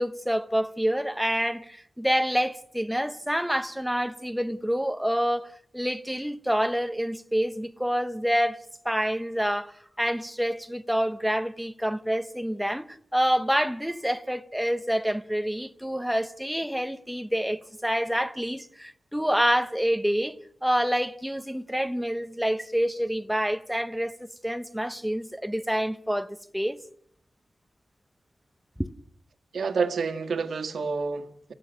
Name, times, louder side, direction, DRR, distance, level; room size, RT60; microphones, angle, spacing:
voice 1, 0.0-8.6 8.8-26.3 26.5-26.8 28.8-28.9, equal, ahead, 0.8 m, -27 dB
voice 2, 29.5-31.5, right 5 dB, 90° right, 1.6 m, -29 dB
29.5 x 16.0 x 6.3 m
wide cardioid pair, 130°, 0 cm